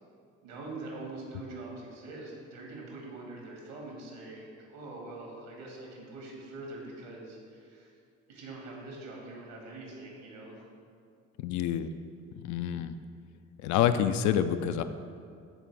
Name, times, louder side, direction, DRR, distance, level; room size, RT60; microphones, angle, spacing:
voice 1, 0.4-7.9 8.3-10.7, right 2 dB, 65° right, -1 dB, 1.8 m, -44 dB
voice 2, 11.4-11.9 12.4-13.0 13.6-14.8, left 9 dB, 50° left, 10 dB, 0.4 m, -27 dB
12.0 x 4.5 x 3.3 m, 2.3 s
figure-of-eight pair, 50°, 38 cm